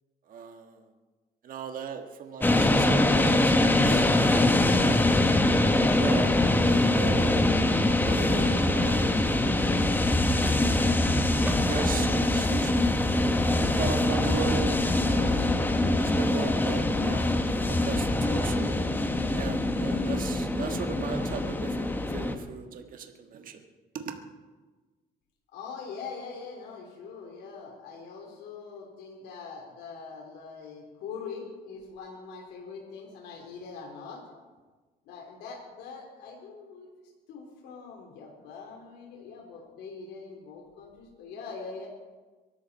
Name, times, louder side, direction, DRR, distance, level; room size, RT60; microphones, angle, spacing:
voice 1, 0.3-0.8 1.4-4.1 4.6-5.1 6.0-6.3 6.6-7.4 7.8-10.0 11.6-12.9 13.4-14.8 15.0-15.5 15.8-18.8 19.3-23.6 23.9-24.2, right 6 dB, 55° right, 5 dB, 1.6 m, -37 dB
sound 1, 2.4-22.3, left 2 dB, 10° left, 1.3 m, -24 dB
sound 2, 8.2-12.7, right 1 dB, 10° right, 2.3 m, -45 dB
voice 2, 25.5-34.2 35.0-36.9 37.3-41.9, left 5 dB, 85° left, -1 dB, 3.4 m, -42 dB
23.0 x 12.5 x 4.3 m, 1.3 s
cardioid pair, 110°, 17 cm